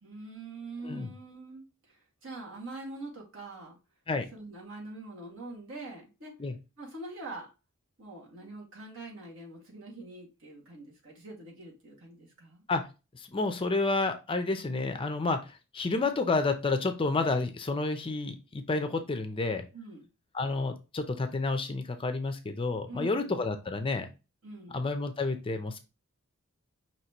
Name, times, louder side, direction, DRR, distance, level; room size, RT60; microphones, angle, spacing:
voice 1, 0.0-3.8 4.3-6.3 6.8-7.5 8.0-12.6 19.7-20.1 22.9-23.4 24.4-24.8, right 2 dB, 65° right, 2.0 m, -44 dB
voice 2, 13.1-19.6 20.3-24.1 24.7-25.8, left 3 dB, 25° left, 0.5 m, -30 dB
5.9 x 3.0 x 2.9 m
head